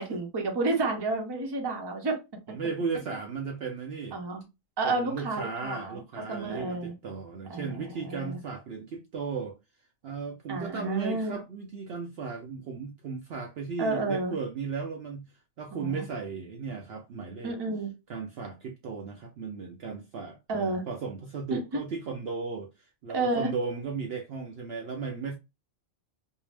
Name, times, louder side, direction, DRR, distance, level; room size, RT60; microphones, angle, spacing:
voice 1, 0.0-2.2 4.1-4.4 4.8-6.9 7.5-8.4 10.5-11.4 13.8-14.4 15.7-16.0 17.4-17.9 20.5-20.8 21.5-21.8 23.1-23.5, right 2 dB, 25° right, 0.6 m, -31 dB
voice 2, 2.5-4.2 4.8-9.5 10.0-15.3 15.6-17.5 18.1-22.7 23.0-25.4, right 5 dB, 65° right, 0.7 m, -35 dB
2.7 x 2.0 x 3.2 m
omnidirectional pair, 1.3 m